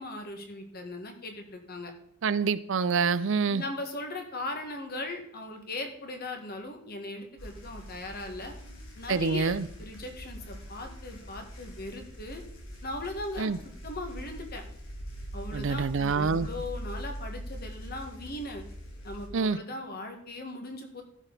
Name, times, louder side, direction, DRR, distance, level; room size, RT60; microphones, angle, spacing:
voice 1, 0.0-1.9 3.5-8.5 9.0-9.5 9.8-12.4 12.8-13.5 13.8-14.6 15.3-18.6 19.0-21.0, left 2 dB, 50° left, 4 dB, 1.8 m, -38 dB
voice 2, 2.2-3.6 9.1-9.7 13.4-13.6 15.5-16.5 19.3-19.6, right 5 dB, 65° right, 16 dB, 0.5 m, -26 dB
sound 1, 7.4-19.3, equal, 75° left, 3.0 m, -42 dB
14.5 x 6.3 x 4.1 m, 0.72 s
head